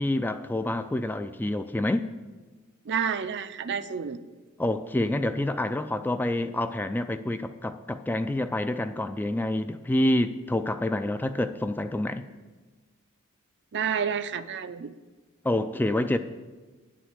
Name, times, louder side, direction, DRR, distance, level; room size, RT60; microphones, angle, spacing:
voice 1, 0.0-2.1 4.6-12.3 15.4-16.2, left 1 dB, 10° left, 0.3 m, -27 dB
voice 2, 2.9-4.2 13.7-14.9, right 7 dB, 55° right, 0.5 m, -29 dB
10.0 x 6.3 x 8.1 m
head